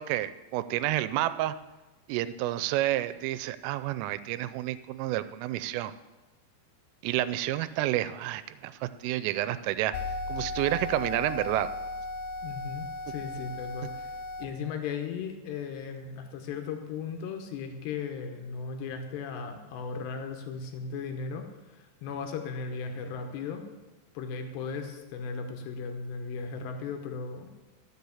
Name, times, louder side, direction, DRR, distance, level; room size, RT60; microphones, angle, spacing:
voice 1, 0.0-1.5 2.1-5.9 7.0-11.7, right 14 dB, 90° right, 14 dB, 3.2 m, -30 dB
sound 1, 9.9-14.5, left 2 dB, 90° left, 2.2 m, -36 dB
voice 2, 12.4-23.6 24.1-27.5, left 5 dB, 70° left, 5 dB, 2.9 m, -37 dB
13.0 x 6.8 x 7.1 m, 1.1 s
omnidirectional pair, 5.7 m